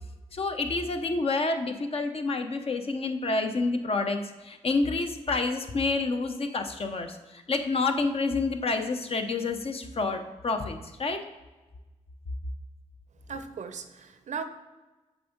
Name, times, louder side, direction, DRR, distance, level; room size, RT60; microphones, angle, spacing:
voice 1, 0.3-11.2, left 3 dB, 45° left, 6 dB, 0.7 m, -28 dB
voice 2, 13.3-14.4, right 6 dB, 65° right, 10 dB, 0.6 m, -37 dB
7.3 x 3.5 x 3.9 m, 1.2 s
cardioid pair, 55°, 13 cm